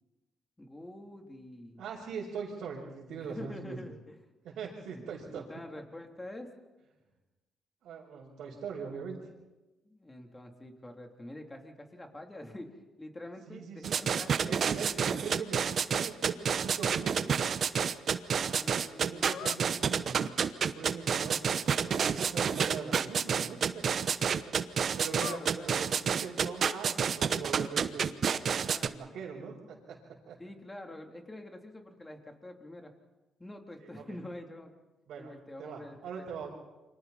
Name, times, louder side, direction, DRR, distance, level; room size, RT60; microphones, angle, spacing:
voice 1, 0.6-1.8 3.2-4.2 4.9-5.0 5.3-6.5 9.8-15.3 18.3-19.5 24.9-25.8 28.6-29.0 30.4-32.9 33.4-34.7 35.2-36.2, left 1 dB, 15° left, 3 dB, 3.4 m, -46 dB
voice 2, 1.8-3.8 4.4-5.4 7.8-9.2 13.5-14.0 14.5-15.6 15.9-17.3 18.9-20.2 20.6-21.4 21.8-23.8 25.0-28.0 28.5-30.0 30.3-30.4 33.8-34.2 35.1-35.3 35.6-36.5, right 6 dB, 75° right, -5 dB, 5.1 m, -41 dB
sound 1, 13.8-28.9, right 7 dB, 55° right, 1.0 m, -29 dB
sound 2, 19.2-19.7 25.0-26.0 26.4-26.8 27.3-27.5, left 11 dB, 85° left, 0.7 m, -44 dB
29.0 x 25.5 x 4.4 m, 1.1 s
cardioid pair, 90°, 0 cm